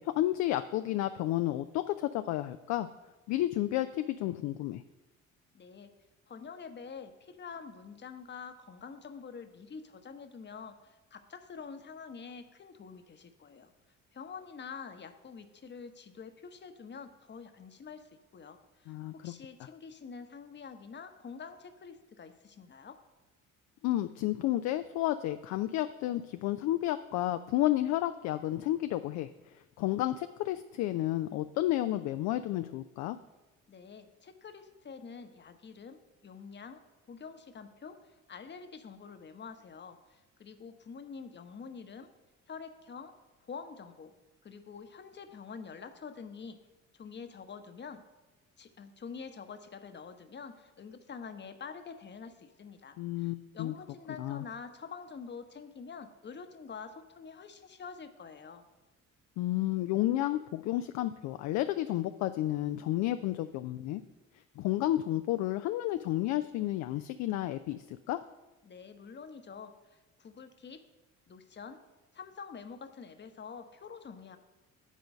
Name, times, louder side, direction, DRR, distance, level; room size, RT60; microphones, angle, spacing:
voice 1, 0.0-2.9 3.3-4.8 18.9-19.3 23.8-29.3 29.8-33.2 53.0-53.7 54.2-54.4 59.4-64.0 64.6-68.2, left 14 dB, 45° left, 10 dB, 0.4 m, -31 dB
voice 2, 5.5-5.9 6.3-13.7 14.1-23.0 33.7-36.8 37.1-42.1 42.5-43.1 43.5-44.1 44.4-46.6 46.9-48.0 48.6-58.6 68.6-70.8 71.3-71.8 72.1-74.4, left 5 dB, 25° left, 8 dB, 0.9 m, -47 dB
8.3 x 5.1 x 7.5 m, 1.1 s
figure-of-eight pair, 50°, 41 cm